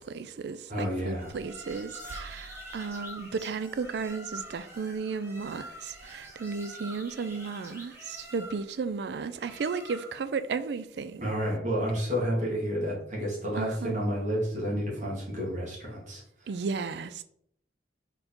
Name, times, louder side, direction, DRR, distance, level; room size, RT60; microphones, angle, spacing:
voice 1, 0.0-11.3 13.6-14.0 16.5-17.2, right 5 dB, 60° right, 0.4 m, -34 dB
voice 2, 0.7-1.3 11.2-16.5, equal, 40° right, 2.0 m, -30 dB
sound 1, 1.1-10.4, equal, 15° right, 1.6 m, -46 dB
4.6 x 4.0 x 5.1 m
head